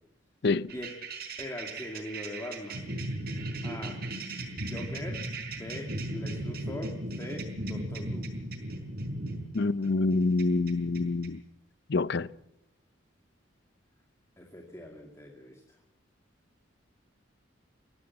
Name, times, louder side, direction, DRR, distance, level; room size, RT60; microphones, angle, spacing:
sound 1, 0.7-11.3, right 1 dB, 50° right, 4.7 m, -37 dB
voice 1, 1.4-3.0 3.6-4.0 4.6-5.2 5.5-8.4 14.4-15.6, left 1 dB, 15° left, 2.4 m, -41 dB
voice 2, 9.5-11.4 11.9-12.3, left 3 dB, 60° left, 0.6 m, -26 dB
22.5 x 15.5 x 7.4 m
head